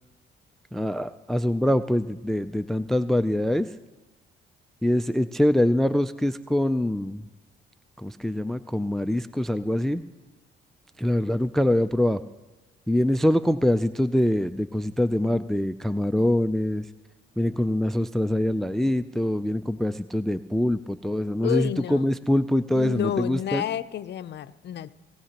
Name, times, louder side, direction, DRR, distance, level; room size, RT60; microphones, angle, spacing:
voice 1, 0.7-3.7 4.8-7.2 8.0-10.0 11.0-12.2 12.9-16.8 17.4-23.6, left 1 dB, ahead, 13 dB, 0.4 m, -24 dB
voice 2, 21.4-22.1 22.7-24.9, left 11 dB, 60° left, 13 dB, 0.6 m, -30 dB
18.5 x 17.5 x 2.9 m, 1.2 s
cardioid pair, 90°, 20 cm